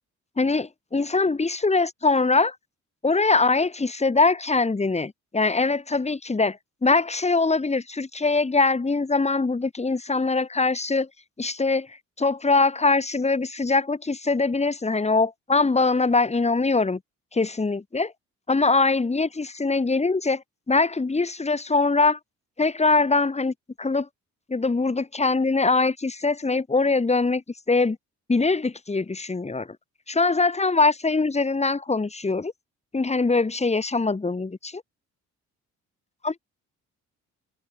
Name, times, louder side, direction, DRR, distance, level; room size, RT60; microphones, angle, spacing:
voice 1, 0.4-2.5 3.0-11.1 11.4-11.9 12.2-17.0 17.3-18.1 18.5-22.2 22.6-24.1 24.5-28.0 28.3-29.7 30.1-32.5 32.9-34.8 36.2-36.4, left 3 dB, 20° left, 3.3 m, -22 dB
cardioid pair, 90°, 30 cm